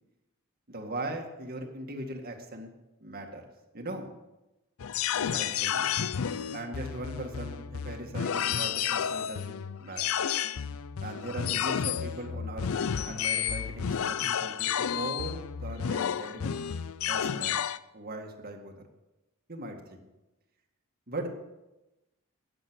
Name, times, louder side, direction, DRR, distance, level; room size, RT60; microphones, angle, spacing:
voice 1, 0.7-2.7 3.0-3.4 3.7-4.1 5.1-5.8 6.5-9.5 9.8-10.1 11.0-12.7 13.1-16.6 17.1-17.6 17.9-18.7 19.5-20.0 21.1-21.3, right 1 dB, 45° right, 3 dB, 2.0 m, -39 dB
sound 1, 4.8-17.8, left 8 dB, 80° left, 0.5 m, -31 dB
14.0 x 9.7 x 6.3 m, 1.0 s
head